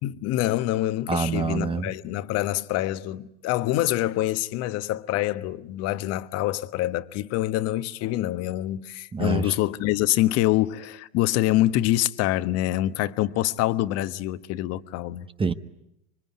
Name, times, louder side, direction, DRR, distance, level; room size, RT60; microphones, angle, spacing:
voice 1, 0.0-15.3, left 15 dB, 45° left, 1.3 m, -25 dB
voice 2, 1.1-1.9 9.1-9.5 15.4-15.5, right 5 dB, 15° right, 1.1 m, -26 dB
26.0 x 24.0 x 9.6 m
hypercardioid pair, 100°, 35 cm